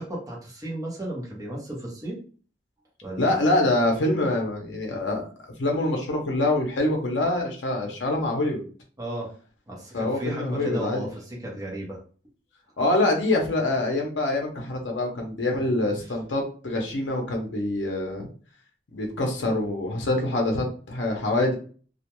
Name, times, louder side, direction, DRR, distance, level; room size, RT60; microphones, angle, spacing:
voice 1, 0.0-2.2 3.0-3.4 9.0-9.3 9.7-12.0 15.5-15.6, right 1 dB, 20° right, -3 dB, 0.8 m, -34 dB
voice 2, 3.2-5.2 5.6-8.6 9.9-11.1 12.8-18.3 18.9-21.6, left 2 dB, 75° left, 1 dB, 0.6 m, -25 dB
2.3 x 2.1 x 2.9 m, 0.40 s
head